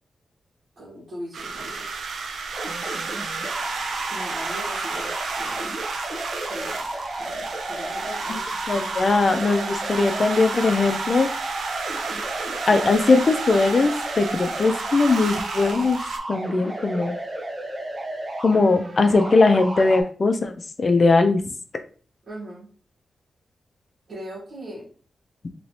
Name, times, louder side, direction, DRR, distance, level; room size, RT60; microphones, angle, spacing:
voice 1, 0.8-1.8 4.1-5.7 6.5-6.9 7.1-8.4 22.3-22.7 24.1-24.9, equal, 55° right, -7 dB, 1.6 m, -39 dB
sound 1, 1.3-16.2, right 4 dB, 90° right, 0.5 m, -32 dB
sound 2, 2.5-20.0, right 1 dB, 30° right, 0.9 m, -33 dB
voice 2, 8.7-11.3 12.7-16.0 16.3-17.2 18.4-20.5 20.8-21.4, left 3 dB, 45° left, 7 dB, 0.5 m, -20 dB
3.2 x 3.0 x 2.7 m, 0.41 s
cardioid pair, 90°, 0 cm